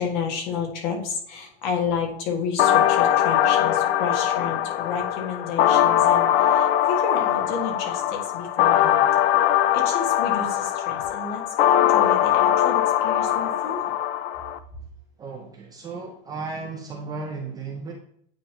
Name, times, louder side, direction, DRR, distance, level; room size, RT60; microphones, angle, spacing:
voice 1, 0.0-9.1 9.7-13.8, left 5 dB, 50° left, 2 dB, 1.7 m, -31 dB
sound 1, 2.6-14.6, left 11 dB, 85° left, 0.6 m, -21 dB
voice 2, 15.2-17.9, right 4 dB, 15° right, 1 dB, 0.4 m, -34 dB
9.0 x 3.7 x 2.9 m, 0.68 s
supercardioid pair, 165°, 29 cm